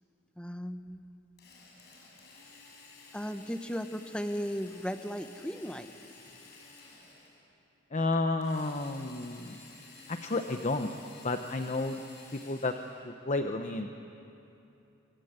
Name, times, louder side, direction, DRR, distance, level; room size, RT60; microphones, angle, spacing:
voice 1, 0.4-1.1 3.1-5.9, equal, 5° left, 8 dB, 1.0 m, -36 dB
Drill, 1.4-7.5 8.4-13.1, left 3 dB, 55° left, 5.7 m, -53 dB
voice 2, 7.9-9.6 10.1-10.9 11.2-12.0 12.3-12.7 13.0-13.9, left 2 dB, 35° left, 6 dB, 0.9 m, -31 dB
27.0 x 25.0 x 8.1 m, 2.9 s
head